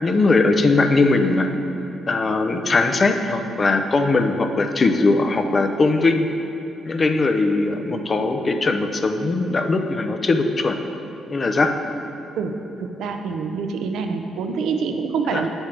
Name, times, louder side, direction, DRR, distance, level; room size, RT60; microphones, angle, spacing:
voice 1, 0.0-1.5 2.1-6.3 6.8-10.8 11.3-11.7 15.3-15.4, left 3 dB, 35° left, 6 dB, 0.6 m, -20 dB
voice 2, 12.8-15.5, right 5 dB, 80° right, 5 dB, 0.6 m, -26 dB
9.0 x 7.2 x 3.4 m, 2.8 s
cardioid pair, 90°, 0 cm